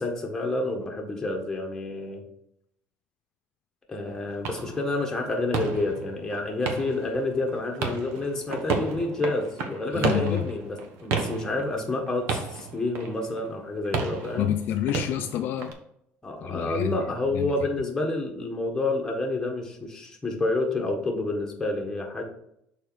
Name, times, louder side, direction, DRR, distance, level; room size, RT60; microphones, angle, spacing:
voice 1, 0.0-2.2 3.9-14.5 16.2-22.2, left 2 dB, 10° left, 1 dB, 1.4 m, -29 dB
sound 1, 4.1-15.7, right 5 dB, 70° right, 1.2 m, -33 dB
voice 2, 9.9-10.5 14.4-15.7 16.4-17.0 17.3-17.5, left 11 dB, 55° left, 7 dB, 0.4 m, -28 dB
6.6 x 4.3 x 4.8 m, 0.76 s
cardioid pair, 150°, 4 cm